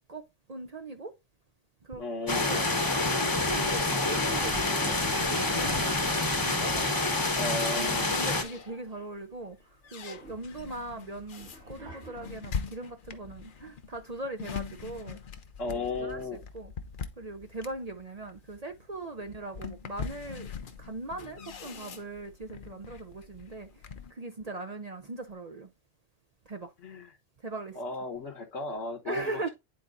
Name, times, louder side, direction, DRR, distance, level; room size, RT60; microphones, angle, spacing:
voice 1, 0.5-1.1 1.8-2.0 2.3-2.7 3.1-7.0 7.7-9.6 9.9-15.2 15.7-16.7 17.2-20.5 20.8-23.7 24.1-25.7 26.5-26.7 27.4-27.8 29.1-29.5, right 2 dB, 40° right, 0.6 m, -40 dB
voice 2, 2.0-2.6 7.2-8.1 15.6-16.4 26.8-27.1 27.7-29.4, left 3 dB, 70° left, 1.4 m, -35 dB
sound 1, 2.3-8.4, left 2 dB, 20° left, 0.9 m, -27 dB
Toilet flush, 3.5-7.9 8.2-8.3 8.5-9.3 9.8-12.7, right 2 dB, 70° right, 4.0 m, -49 dB
sound 2, 6.1-8.9 9.4-24.1, left 6 dB, 50° left, 0.8 m, -43 dB
10.5 x 4.2 x 2.5 m
omnidirectional pair, 1.3 m